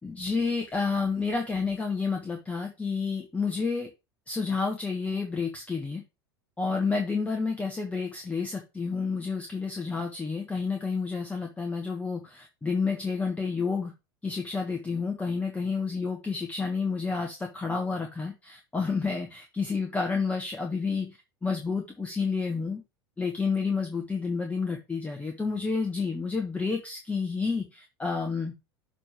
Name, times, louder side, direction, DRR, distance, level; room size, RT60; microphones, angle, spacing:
voice 1, 0.0-3.9 4.3-6.0 6.6-13.9 14.2-22.8 23.2-28.5, left 4 dB, 10° left, 2 dB, 1.3 m, -30 dB
6.8 x 3.3 x 6.0 m, 0.25 s
figure-of-eight pair, 80°, 13 cm